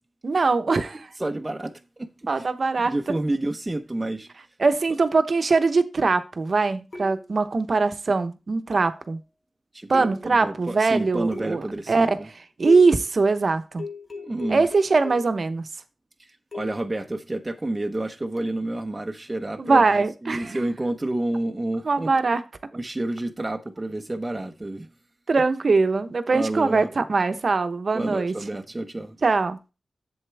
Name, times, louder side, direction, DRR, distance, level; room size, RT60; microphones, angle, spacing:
voice 1, 0.2-1.0 2.3-2.9 4.6-9.2 9.9-12.2 12.6-13.8 14.5-15.7 19.6-20.6 21.8-22.4 25.3-28.3 29.2-29.6, right 4 dB, 55° right, 1.0 m, -22 dB
voice 2, 1.2-2.5 2.7-4.3 9.7-12.3 14.1-14.7 16.2-22.4 22.7-24.9 25.3-25.4 26.3-26.9 27.9-29.2, right 1 dB, 20° right, 0.9 m, -30 dB
sound 1, 6.9-7.5 8.7-9.1 9.9-10.5 11.3-11.8 12.7-13.1 13.8-15.4 16.5-16.9 18.4-18.6, left 4 dB, 40° left, 1.5 m, -37 dB
7.7 x 7.2 x 3.4 m
wide cardioid pair, 75°, 0 cm